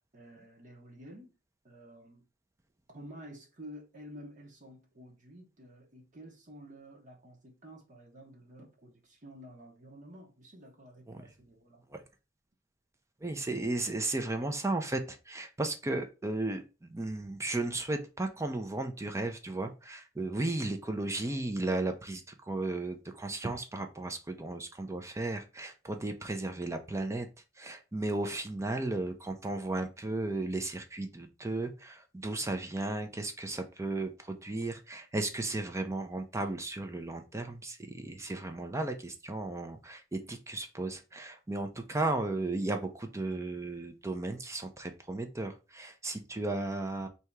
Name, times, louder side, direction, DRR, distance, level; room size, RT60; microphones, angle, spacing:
voice 1, 0.1-1.3 1.6-2.2 2.9-11.8, equal, 40° right, 1.1 m, -51 dB
voice 2, 13.2-27.3 27.6-47.1, right 2 dB, 15° right, 0.5 m, -35 dB
3.4 x 2.8 x 4.6 m
head